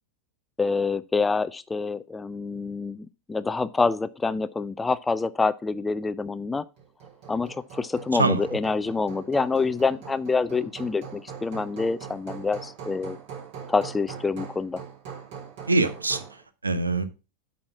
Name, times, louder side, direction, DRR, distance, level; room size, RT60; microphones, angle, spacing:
voice 1, 0.6-6.7 7.3-13.2 13.7-14.8, left 4 dB, 10° left, 0.4 m, -26 dB
Hammer, 6.8-16.4, right 7 dB, 50° right, 3.6 m, -42 dB
voice 2, 8.1-8.6 15.7-17.0, right 3 dB, 80° right, 0.8 m, -25 dB
8.6 x 4.2 x 5.9 m
figure-of-eight pair, 90°, 0 cm